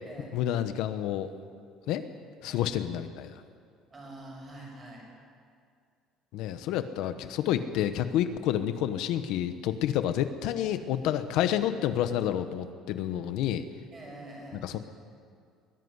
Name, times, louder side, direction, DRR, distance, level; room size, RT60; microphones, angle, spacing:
voice 1, 0.3-1.3 1.9-2.0 2.4-3.3 6.3-13.6 14.6-14.8, left 11 dB, 60° left, 10 dB, 1.1 m, -29 dB
voice 2, 3.9-5.1 13.9-14.7, right 1 dB, 20° right, -1 dB, 6.3 m, -45 dB
22.0 x 17.0 x 9.7 m, 2.2 s
cardioid pair, 175°, 0 cm